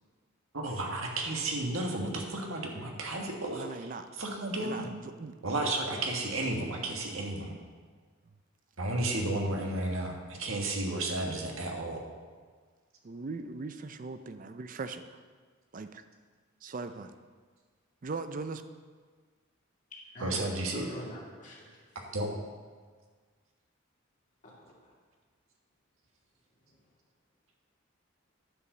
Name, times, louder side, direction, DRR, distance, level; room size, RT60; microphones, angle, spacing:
voice 1, 0.5-3.9 4.2-4.9 5.4-7.5 8.8-12.0 20.2-20.9 22.1-22.3, right 2 dB, 85° right, 1 dB, 1.6 m, -33 dB
voice 2, 3.5-4.1 4.6-5.4 10.5-10.6 13.0-15.0 15.7-16.0 16.6-17.1 18.0-18.6, right 3 dB, 40° right, 10 dB, 0.5 m, -39 dB
voice 3, 20.1-20.5 20.7-21.8 24.4-24.9 26.7-26.9, equal, 40° left, -4 dB, 2.2 m, -45 dB
9.8 x 5.0 x 6.7 m, 1.5 s
head